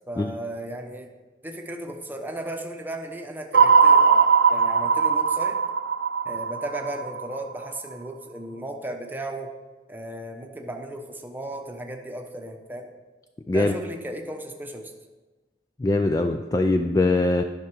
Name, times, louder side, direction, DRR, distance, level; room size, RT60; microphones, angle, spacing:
voice 1, 0.1-1.1 1.4-5.6 6.2-9.5 9.9-12.9 13.5-14.9, right 1 dB, 10° right, 3 dB, 0.8 m, -35 dB
sound 1, 3.5-7.8, right 5 dB, 80° right, 0.5 m, -19 dB
voice 2, 15.8-17.4, left 2 dB, 20° left, 6 dB, 0.3 m, -22 dB
10.5 x 5.9 x 4.7 m, 1.2 s
head